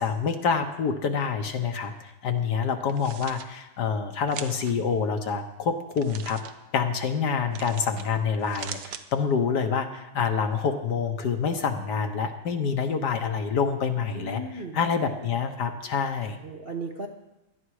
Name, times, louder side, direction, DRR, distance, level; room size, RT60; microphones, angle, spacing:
voice 1, 0.0-6.4 6.7-16.4, left 6 dB, 65° left, 6 dB, 1.6 m, -27 dB
sound 1, 2.8-3.5 4.3-4.7 5.9-6.5 7.5-8.1 8.4-9.0, right 8 dB, 65° right, 1.4 m, -40 dB
voice 2, 14.1-14.8 16.4-17.1, right 2 dB, 40° right, 3 dB, 0.9 m, -36 dB
17.5 x 12.0 x 4.9 m, 0.96 s
omnidirectional pair, 2.1 m